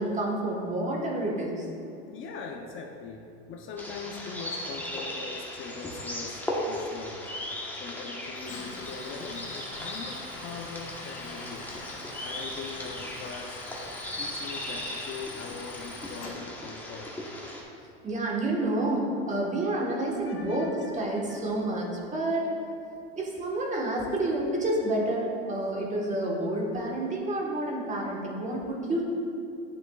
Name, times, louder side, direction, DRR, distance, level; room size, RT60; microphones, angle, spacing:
voice 1, 0.0-1.7 18.0-22.5 23.1-29.0, right 1 dB, 25° right, -2 dB, 1.4 m, -29 dB
voice 2, 2.1-7.3 7.8-17.1 20.2-21.4, left 5 dB, 45° left, 2 dB, 0.8 m, -42 dB
sound 1, 3.8-17.6, left 1 dB, 5° left, 1.2 m, -37 dB
Tools, 8.4-16.3, left 3 dB, 65° left, 1.5 m, -44 dB
9.7 x 6.1 x 2.4 m, 2.7 s
supercardioid pair, 105°, 29 cm